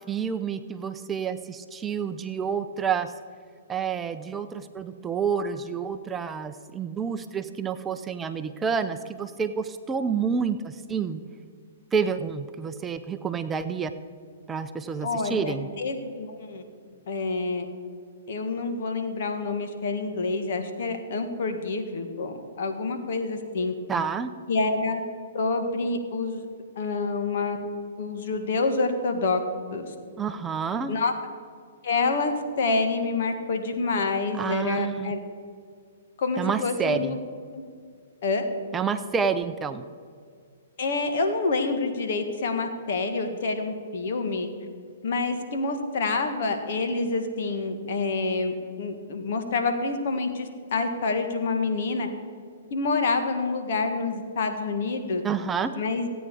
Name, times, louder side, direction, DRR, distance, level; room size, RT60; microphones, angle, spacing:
voice 1, 0.1-3.1 3.7-11.2 11.9-13.9 14.5-15.7 23.9-24.3 30.2-30.9 34.3-35.1 36.4-37.2 38.7-39.9 55.2-55.7, right 6 dB, 15° right, 9 dB, 0.6 m, -29 dB
voice 2, 15.0-16.7 17.1-17.7 18.3-23.7 24.5-25.0 25.3-26.4 26.7-27.6 28.0-29.4 29.7-29.9 30.9-31.1 31.8-32.3 32.6-35.2 36.2-37.2 37.5-37.6 38.2-38.5 40.8-44.5 45.0-52.1 52.7-55.2 55.7-56.1, left 3 dB, 60° left, 6 dB, 1.8 m, -27 dB
16.0 x 9.0 x 4.9 m, 2.1 s
hypercardioid pair, 130°, 0 cm